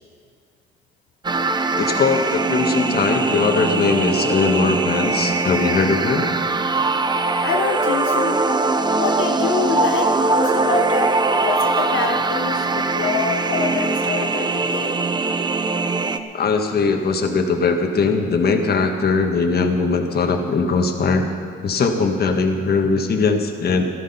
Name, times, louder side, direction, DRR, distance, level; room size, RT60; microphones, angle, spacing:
sound 1, 1.2-16.2, right 3 dB, 20° right, 0.8 m, -21 dB
voice 1, 1.7-6.3 16.3-21.2 21.6-23.8, left 4 dB, 50° left, 5 dB, 1.6 m, -20 dB
voice 2, 7.4-8.4 9.0-15.0, left 5 dB, 85° left, 3 dB, 1.0 m, -26 dB
14.0 x 13.0 x 5.6 m, 2.1 s
cardioid pair, 90°, 20 cm